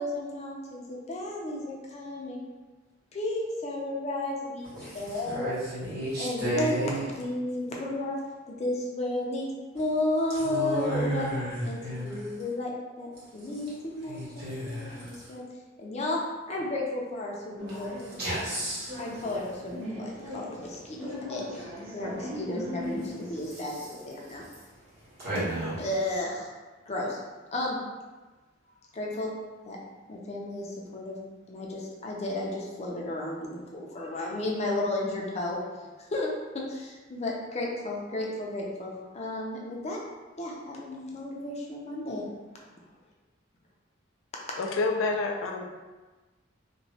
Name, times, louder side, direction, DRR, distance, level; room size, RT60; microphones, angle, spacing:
voice 1, 0.0-2.4 3.1-5.5 6.2-9.5 9.7-11.3 11.6-11.8 12.0-12.7 13.0-15.4 15.8-16.2 16.5-17.9 19.0-23.8 24.0-24.4 25.8-26.5 26.9-27.2 27.5-27.8 28.9-29.3 29.7-29.8 30.1-31.1 31.5-35.6 36.1-40.0 40.4-42.2 44.3-44.4, left 1 dB, 35° left, -2 dB, 0.5 m, -33 dB
voice 2, 4.7-7.1 10.3-12.4 13.2-13.7 14.0-15.4 17.7-19.3 23.4-23.9 24.2-25.8, right 1 dB, 55° right, -11 dB, 1.4 m, -34 dB
sound 1, 17.6-23.5, left 1 dB, 90° right, 0.8 m, -39 dB
voice 3, 44.6-45.6, left 3 dB, 90° left, 2 dB, 0.4 m, -28 dB
2.9 x 2.2 x 2.7 m, 1.2 s
head